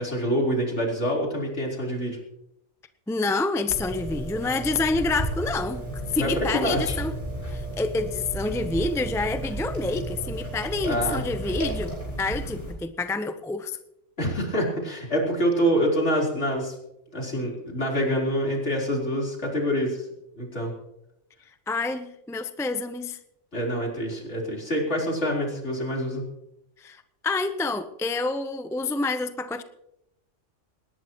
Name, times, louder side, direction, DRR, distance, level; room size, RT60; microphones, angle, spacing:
voice 1, 0.0-2.2 6.2-7.0 10.9-11.2 14.2-16.7 17.1-20.0 20.4-20.7 23.5-26.2, equal, 65° left, -2 dB, 4.3 m, -26 dB
voice 2, 3.1-5.8 6.1-7.1 7.5-13.8 21.7-23.2 26.8-29.6, left 3 dB, 5° left, 9 dB, 0.6 m, -28 dB
sound 1, 3.7-12.7, right 1 dB, 30° left, 6.5 m, -33 dB
20.0 x 18.5 x 3.1 m, 0.84 s
omnidirectional pair, 1.3 m